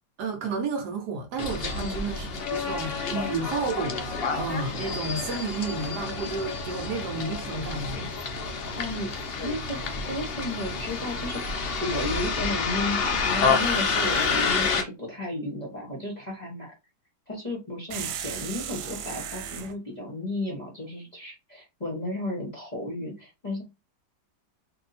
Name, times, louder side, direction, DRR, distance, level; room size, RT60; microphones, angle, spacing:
voice 1, 0.2-4.0 4.3-8.1, right 4 dB, 65° right, 1.2 m, -31 dB
Bus, 1.4-14.8, left 4 dB, 75° left, 0.5 m, -29 dB
voice 2, 8.8-9.8 10.1-11.4 11.8-16.7 17.3-23.6, left 1 dB, 30° left, 0.9 m, -33 dB
sound 1, 17.9-19.8, right 8 dB, 85° right, 1.3 m, -35 dB
2.8 x 2.7 x 4.1 m
omnidirectional pair, 2.0 m